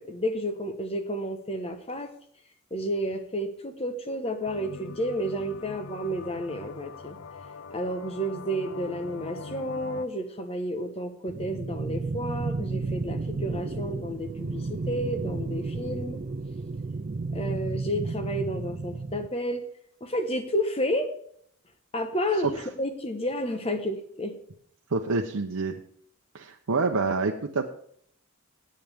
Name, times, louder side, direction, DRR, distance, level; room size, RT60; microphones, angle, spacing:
voice 1, 0.1-2.1 2.7-7.2 7.7-16.2 17.3-19.6 20.0-21.1 21.9-24.3, equal, 25° left, 7 dB, 1.1 m, -31 dB
sound 1, 4.5-10.1, left 4 dB, 65° left, 0.6 m, -42 dB
sound 2, 11.3-19.3, right 3 dB, 35° right, 0.4 m, -32 dB
voice 2, 24.9-25.8 26.3-27.7, right 3 dB, 80° right, 2 dB, 0.8 m, -27 dB
17.0 x 9.0 x 3.6 m, 0.64 s
head